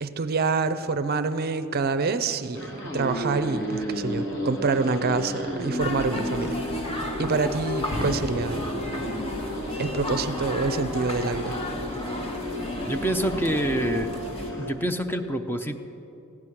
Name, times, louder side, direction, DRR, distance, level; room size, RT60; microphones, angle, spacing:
voice 1, 0.0-6.6 7.2-8.6 9.8-11.6, right 4 dB, 45° right, 0.5 m, -26 dB
sound 1, 2.5-14.7, equal, 55° left, 2.1 m, -34 dB
sound 2, 5.8-14.5, left 1 dB, 30° left, 1.2 m, -33 dB
sound 3, 6.2-14.7, left 2 dB, 80° left, 1.5 m, -37 dB
voice 2, 12.8-14.1 14.6-15.8, equal, 10° left, 0.6 m, -26 dB
15.0 x 6.2 x 9.8 m
head